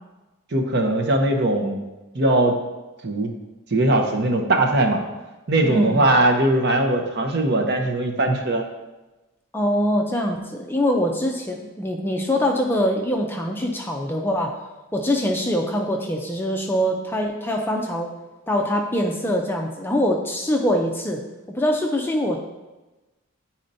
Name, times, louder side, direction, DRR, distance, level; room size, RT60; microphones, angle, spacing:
voice 1, 0.5-1.8 2.1-2.5 3.0-3.3 3.7-5.0 5.5-8.6, right 1 dB, 50° right, 4 dB, 0.7 m, -20 dB
voice 2, 5.6-6.1 9.5-14.6 14.9-18.1 18.5-21.2 21.5-22.4, equal, 10° left, 1 dB, 0.4 m, -23 dB
9.9 x 4.2 x 2.7 m, 1.1 s
head